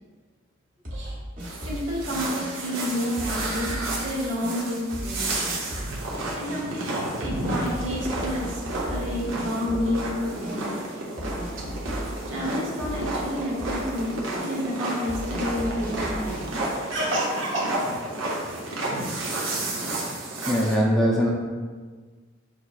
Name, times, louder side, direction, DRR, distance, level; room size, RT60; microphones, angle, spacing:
sound 1, 0.8-2.0 2.4-2.5 3.2-3.9 4.4-4.6 4.9-5.2 5.4-6.0 6.5-6.6 7.2-9.1 9.4-10.1 10.4-10.6 11.2-12.5 12.8-13.1 13.3-13.9 14.3-14.5 15.1-16.4, equal, 40° right, 0.9 m, -35 dB
sound 2, 1.4-20.7, right 2 dB, 85° right, 0.9 m, -31 dB
voice 1, 1.6-5.4 6.4-8.6 8.9-11.0 12.3-16.5 16.9-17.7, equal, 70° right, -4 dB, 1.2 m, -30 dB
voice 2, 20.4-21.3, equal, ahead, -4 dB, 0.4 m, -21 dB
6.0 x 2.9 x 2.4 m, 1.5 s
head